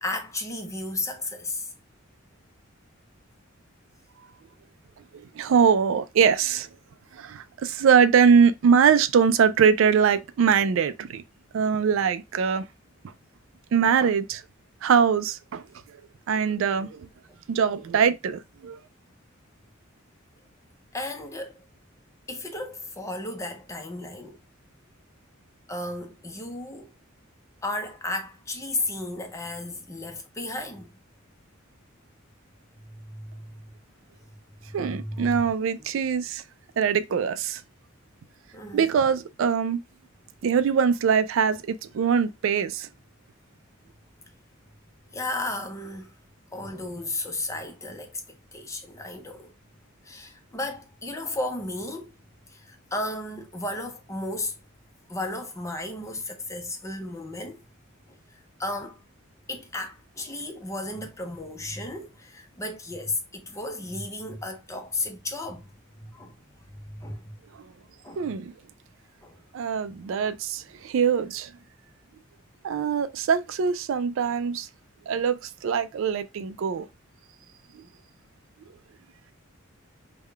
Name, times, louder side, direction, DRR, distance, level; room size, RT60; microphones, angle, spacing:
voice 1, 0.0-1.7 20.9-21.6 22.3-24.4 25.7-26.9 27.6-30.9 32.8-33.6 34.7-35.4 38.5-38.9 45.1-46.1 46.5-48.2 48.5-49.5 50.0-52.1 52.5-54.6 55.1-57.6 58.6-59.0 59.5-65.7 66.0-66.3 66.9-67.3 68.0-68.3 69.2-69.4, left 2 dB, 15° left, 0.6 m, -34 dB
voice 2, 5.4-6.7 7.1-11.2 11.5-12.6 13.7-14.4 14.8-15.6 16.3-17.1 17.5-18.8 34.7-36.4 36.8-37.6 38.7-39.8 40.4-42.9 68.2-68.5 69.5-71.5 72.6-74.7 75.1-76.9, right 6 dB, 65° right, 0.3 m, -22 dB
3.6 x 2.2 x 3.3 m
head